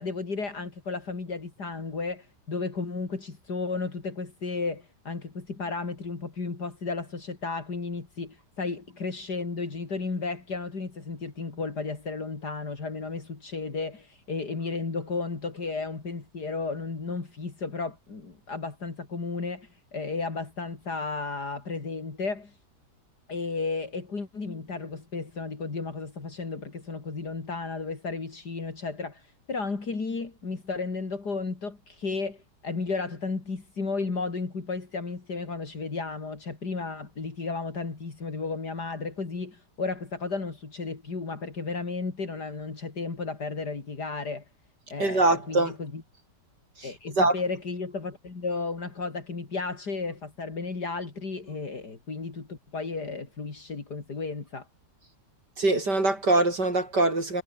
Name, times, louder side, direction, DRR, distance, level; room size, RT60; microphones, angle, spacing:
voice 1, 0.0-22.5 23.3-29.2 29.5-44.4 44.9-46.0 46.8-54.7, left 4 dB, 65° left, 4.0 m, -33 dB
voice 2, 45.0-45.7 46.8-46.9 47.2-47.3 55.6-57.4, right 2 dB, 70° right, 7.0 m, -23 dB
omnidirectional pair, 1.9 m